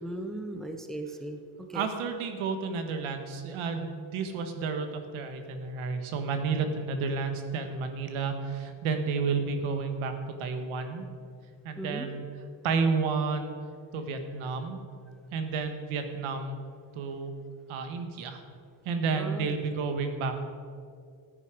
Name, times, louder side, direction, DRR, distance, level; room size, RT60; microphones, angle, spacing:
voice 1, 0.0-1.9 11.8-12.1 19.1-19.6, right 1 dB, ahead, 5 dB, 0.5 m, -37 dB
voice 2, 1.7-10.1 10.4-11.0 11.6-12.2 12.6-13.5 13.9-14.8 15.3-16.6 16.9-17.3 17.7-18.4 18.8-20.4, right 5 dB, 90° right, 6 dB, 1.6 m, -31 dB
14.5 x 9.7 x 5.1 m, 2.2 s
cardioid pair, 170°, 47 cm